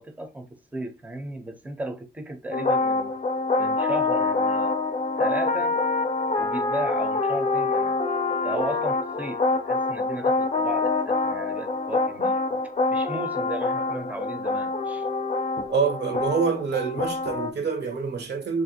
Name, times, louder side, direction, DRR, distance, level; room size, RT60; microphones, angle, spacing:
voice 1, 0.0-3.1 3.6-4.8 5.2-5.8 6.4-8.0 8.4-12.6 12.9-15.1, right 1 dB, 10° right, 0.5 m, -35 dB
sound 1, 2.5-17.5, left 3 dB, 40° left, 0.5 m, -26 dB
voice 2, 15.7-18.6, right 5 dB, 80° right, 0.8 m, -26 dB
3.2 x 2.4 x 2.7 m
wide cardioid pair, 145°, 17 cm